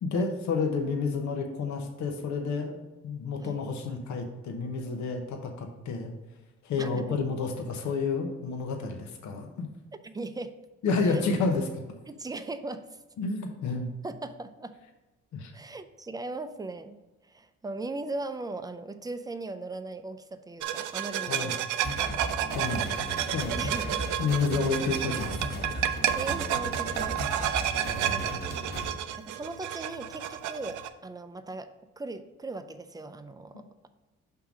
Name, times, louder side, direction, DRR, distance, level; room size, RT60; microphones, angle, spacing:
voice 1, 0.0-6.1 6.6-9.7 10.8-11.8 13.2-13.9 15.3-15.5 21.3-21.5 22.5-22.9 23.3-23.7 24.2-25.7 27.9-28.4 33.5-33.6, left 4 dB, 70° left, 3 dB, 0.9 m, -30 dB
voice 2, 6.8-7.2 10.0-10.6 11.1-11.2 12.1-12.8 14.0-14.7 15.5-17.0 17.3-21.6 21.9-22.0 23.6-24.1 25.9-27.2 28.2-28.4 29.1-31.7 32.0-33.9, right 2 dB, 15° right, 10 dB, 0.4 m, -38 dB
sound 1, 20.6-30.9, right 11 dB, 80° right, 0.5 m, -31 dB
sound 2, 21.8-28.9, right 1 dB, 30° left, 1.4 m, -36 dB
5.6 x 3.7 x 6.0 m, 1.1 s
cardioid pair, 90°, 30 cm